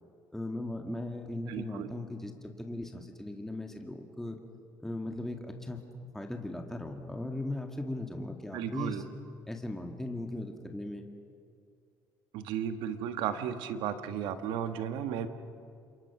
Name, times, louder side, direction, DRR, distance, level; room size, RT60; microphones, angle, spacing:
voice 1, 0.3-4.4 4.8-5.8 6.1-9.0 9.5-11.1, left 1 dB, 5° left, 3 dB, 2.0 m, -38 dB
voice 2, 1.5-1.9 8.5-9.0 12.3-15.3, right 9 dB, 85° right, 9 dB, 1.4 m, -34 dB
27.5 x 23.0 x 6.0 m, 2.3 s
cardioid pair, 90°, 8 cm